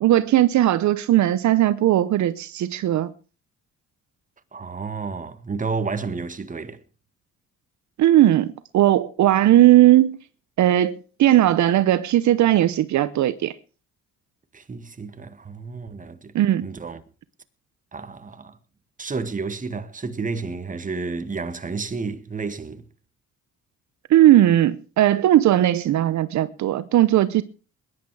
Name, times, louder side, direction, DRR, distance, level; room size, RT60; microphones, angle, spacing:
voice 1, 0.0-3.1 8.0-10.2 10.6-13.5 16.3-16.7 24.1-27.4, right 13 dB, 70° right, 0.8 m, -18 dB
voice 2, 4.5-6.8 14.5-16.3 16.6-17.0 17.9-18.6 19.0-22.9, right 4 dB, 25° right, 1.7 m, -31 dB
20.5 x 10.5 x 4.8 m
cardioid pair, 90°, 30 cm